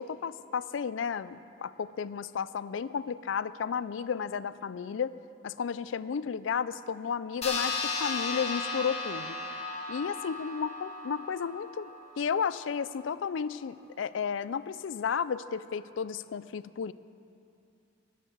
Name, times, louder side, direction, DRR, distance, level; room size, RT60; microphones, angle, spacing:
voice 1, 0.0-5.1 5.4-9.4 9.9-11.9 12.2-16.9, left 6 dB, 80° left, 17 dB, 0.4 m, -33 dB
sound 1, 7.4-12.3, left 3 dB, 35° left, 1.7 m, -35 dB
13.0 x 7.7 x 9.3 m, 2.6 s
head